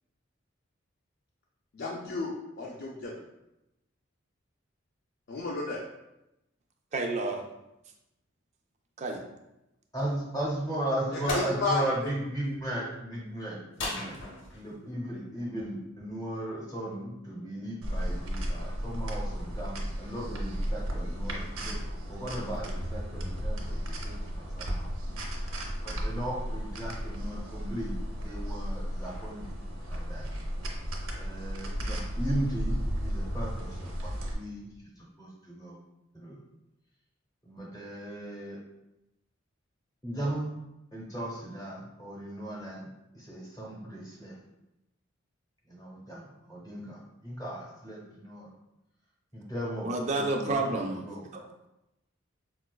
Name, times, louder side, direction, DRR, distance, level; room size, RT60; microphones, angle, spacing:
voice 1, 1.8-3.1 5.3-5.8 11.1-11.8, left 3 dB, 55° left, -4 dB, 0.4 m, -32 dB
voice 2, 6.9-7.4 9.0-9.2 49.8-51.5, right 2 dB, 35° right, 3 dB, 0.3 m, -30 dB
voice 3, 9.9-14.2 14.5-21.8 22.1-24.9 25.5-29.5 29.9-30.3 31.2-34.7 35.2-35.8 36.1-36.4 37.5-38.6 40.0-40.5 40.9-42.9 43.1-44.3 45.7-48.5 49.3-51.3, right 1 dB, 20° left, -4 dB, 0.7 m, -36 dB
sound 1, 11.3-11.5 13.8-14.7, left 2 dB, 70° left, 0.7 m, -36 dB
sound 2, 17.8-34.3, equal, 85° right, 0.6 m, -34 dB
4.4 x 2.3 x 2.2 m, 0.92 s
head